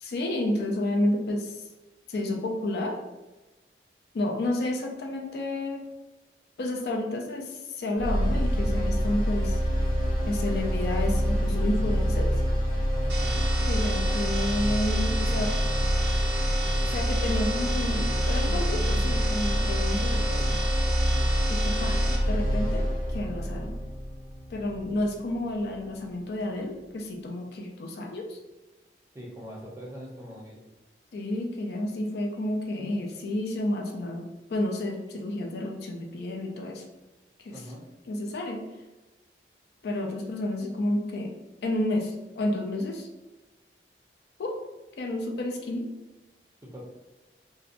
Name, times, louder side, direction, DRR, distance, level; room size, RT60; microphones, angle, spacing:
voice 1, 0.0-1.6 2.1-3.0 4.1-5.8 6.6-9.6 10.3-12.3 13.7-15.5 16.9-20.6 21.5-22.9 23.1-23.7 24.5-28.4 31.1-36.8 37.4-37.5 38.1-38.6 39.8-41.3 41.6-43.1 44.4-44.6 45.0-45.9, left 1 dB, 65° left, 2 dB, 0.4 m, -30 dB
sound 1, 8.0-26.0, equal, 30° left, 0.9 m, -26 dB
voice 2, 13.0-13.4 21.9-22.0 29.1-30.6 37.5-37.8 46.6-46.8, equal, 15° right, -3 dB, 0.5 m, -42 dB
sound 2, 13.1-22.1, right 2 dB, 80° right, 0.8 m, -34 dB
2.7 x 2.1 x 2.4 m, 1.1 s
head